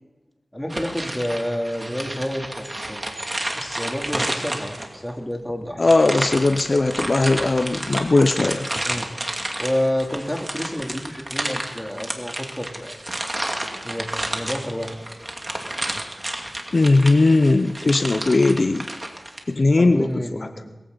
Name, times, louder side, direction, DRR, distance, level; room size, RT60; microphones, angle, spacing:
voice 1, 0.5-5.9 8.8-9.1 9.6-13.0 13.8-15.0 19.8-20.7, equal, 10° left, 1 dB, 2.9 m, -29 dB
sound 1, 0.7-5.1 5.8-19.4, right 1 dB, 30° right, 2.3 m, -31 dB
voice 2, 5.8-8.7 16.7-18.8 19.5-20.1, left 2 dB, 60° left, 9 dB, 0.7 m, -18 dB
21.5 x 15.0 x 4.0 m, 1.1 s
wide cardioid pair, 60°, 0 cm